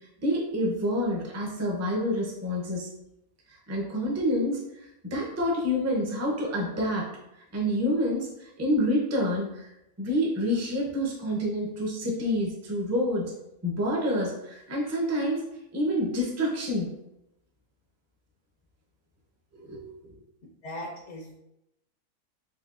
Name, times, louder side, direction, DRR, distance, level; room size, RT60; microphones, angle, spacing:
voice 1, 0.2-2.9 3.7-4.6 5.0-7.1 7.5-9.7 10.0-13.3 13.6-15.4 15.7-16.9 19.5-19.8, equal, 20° right, -3 dB, 0.4 m, -27 dB
voice 2, 20.6-21.3, left 1 dB, 65° left, -2 dB, 0.9 m, -38 dB
4.3 x 2.8 x 2.5 m, 0.86 s
omnidirectional pair, 1.5 m